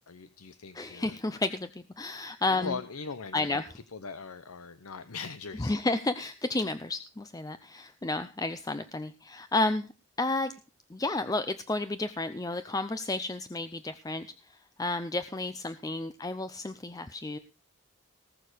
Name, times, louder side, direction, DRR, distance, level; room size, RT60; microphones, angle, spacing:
voice 1, 0.1-1.2 2.5-3.6 3.9-5.8, left 4 dB, 80° left, 11 dB, 0.8 m, -40 dB
voice 2, 0.7-2.8 3.3-3.6 5.6-9.9 10.2-10.5 10.9-17.4, left 2 dB, 15° left, 11 dB, 0.5 m, -31 dB
19.0 x 6.6 x 5.0 m, 0.35 s
head